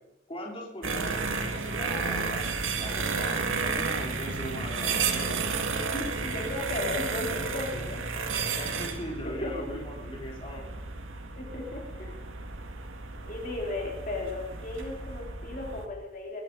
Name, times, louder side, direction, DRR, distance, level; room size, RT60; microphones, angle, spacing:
voice 1, 0.3-2.5 2.8-5.5 8.6-10.6, equal, 30° left, -1 dB, 3.4 m, -40 dB
sound 1, 0.8-15.9, right 4 dB, 90° right, 1.9 m, -32 dB
voice 2, 5.9-8.0 9.2-9.9 11.4-12.2 13.2-16.4, left 2 dB, 45° left, 0 dB, 3.2 m, -35 dB
22.5 x 12.0 x 5.3 m, 0.89 s
head